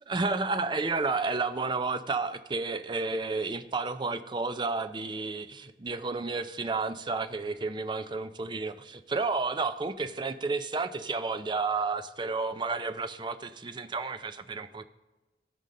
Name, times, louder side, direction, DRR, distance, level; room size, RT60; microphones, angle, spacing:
voice 1, 0.1-14.8, right 3 dB, 25° right, 10 dB, 0.4 m, -31 dB
15.5 x 5.3 x 3.7 m, 1.1 s
head